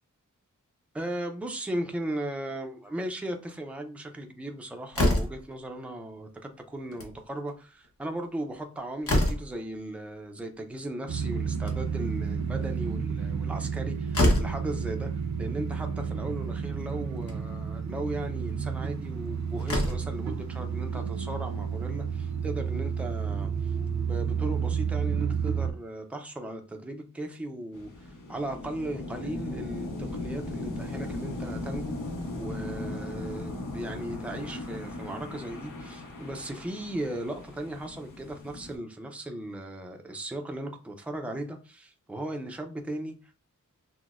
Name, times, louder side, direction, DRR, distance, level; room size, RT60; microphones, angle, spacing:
voice 1, 0.9-15.1 15.4-31.9 32.4-43.3, right 1 dB, 5° right, 0.5 m, -37 dB
Slam, 4.9-5.5 6.8-7.2 7.5-7.6 7.8-7.9 8.5-9.6 11.4-12.1 13.7-13.8 14.1-14.6 15.8-15.9 16.3-16.4 17.1-17.4 19.1-19.2 19.6-20.2, left 1 dB, 45° left, 0.9 m, -26 dB
sound 1, 11.1-25.7, right 6 dB, 60° right, 0.6 m, -31 dB
sound 2, 27.7-38.8, left 2 dB, 75° left, 0.9 m, -37 dB
5.8 x 2.1 x 2.4 m
wide cardioid pair, 115°, 32 cm